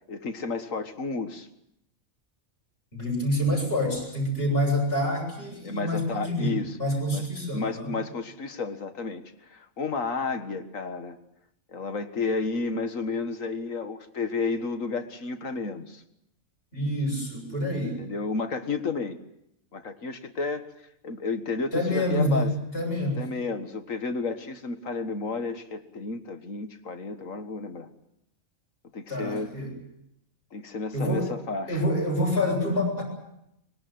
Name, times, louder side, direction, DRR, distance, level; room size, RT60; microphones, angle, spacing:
voice 1, 0.0-1.5 5.6-6.8 7.1-7.2 7.5-9.2 9.5-11.2 11.7-16.0 18.0-19.2 19.7-20.6 21.0-22.5 23.2-27.9 28.9-29.5 30.5-31.8, left 4 dB, 70° left, 8 dB, 2.0 m, -32 dB
voice 2, 2.9-8.0 16.7-18.0 21.7-23.3 29.1-29.7 30.9-31.3 31.7-33.0, left 1 dB, 45° left, -2 dB, 7.8 m, -27 dB
24.5 x 21.5 x 7.8 m, 0.80 s
omnidirectional pair, 1.4 m